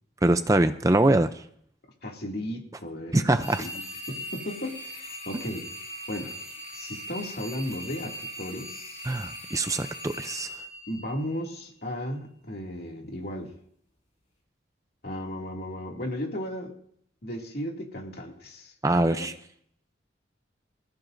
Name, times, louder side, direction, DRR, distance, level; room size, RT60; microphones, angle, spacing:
voice 1, 0.2-1.4 3.1-3.7 9.1-10.5 18.8-19.3, right 2 dB, 15° right, 9 dB, 0.5 m, -23 dB
voice 2, 2.0-3.8 4.1-5.7 6.1-6.4 6.7-9.0 10.9-13.5 15.0-16.7 17.2-19.3, left 1 dB, 55° left, 0 dB, 2.5 m, -35 dB
sound 1, 3.4-11.6, equal, 40° left, 6.3 m, -40 dB
26.0 x 15.0 x 2.7 m, 0.67 s
head